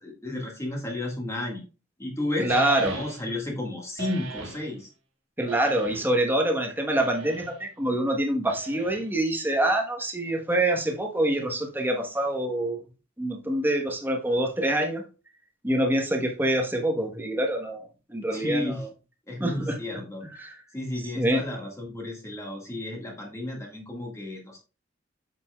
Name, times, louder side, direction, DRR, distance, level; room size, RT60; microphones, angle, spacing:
voice 1, 0.0-1.6 2.0-2.5 2.8-4.9 18.3-18.9 19.3-20.5 20.7-24.6, left 1 dB, 15° left, 1.8 m, -33 dB
voice 2, 2.4-3.0 5.4-12.8 13.2-15.0 15.6-18.9 19.4-19.8 20.2-20.6 21.1-21.4, right 1 dB, 10° right, 1.2 m, -26 dB
sound 1, 2.5-3.4 4.0-4.7 5.5-6.2 7.0-7.6 8.5-9.2, right 3 dB, 85° right, 1.5 m, -35 dB
7.5 x 7.0 x 2.3 m
head